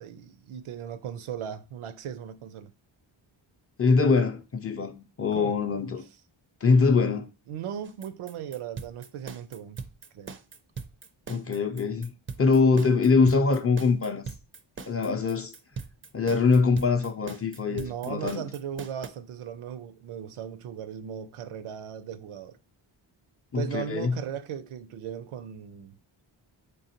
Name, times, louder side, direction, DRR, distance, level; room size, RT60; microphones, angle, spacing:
voice 1, 0.0-2.7 5.3-5.6 7.5-9.8 10.1-10.4 17.6-22.6 23.5-26.0, right 9 dB, 80° right, 0.5 m, -37 dB
voice 2, 3.8-6.0 6.6-7.3 11.3-12.1 12.4-14.3 14.9-15.5 16.1-18.4 23.5-24.2, left 4 dB, 30° left, 0.5 m, -23 dB
sound 1, 7.8-19.1, right 5 dB, 30° right, 0.4 m, -41 dB
3.9 x 3.4 x 2.8 m
cardioid pair, 70°, 48 cm